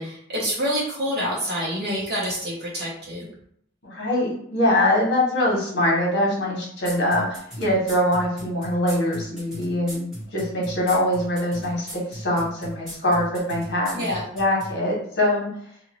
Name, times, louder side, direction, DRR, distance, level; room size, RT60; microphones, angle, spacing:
voice 1, 0.0-3.3 13.9-14.2, equal, 55° right, -4 dB, 1.1 m, -27 dB
voice 2, 3.8-14.1 14.3-15.5, left 1 dB, 60° left, -4 dB, 1.1 m, -23 dB
sound 1, 6.8-14.7, equal, 5° right, 1.2 m, -37 dB
2.7 x 2.6 x 3.1 m, 0.68 s
head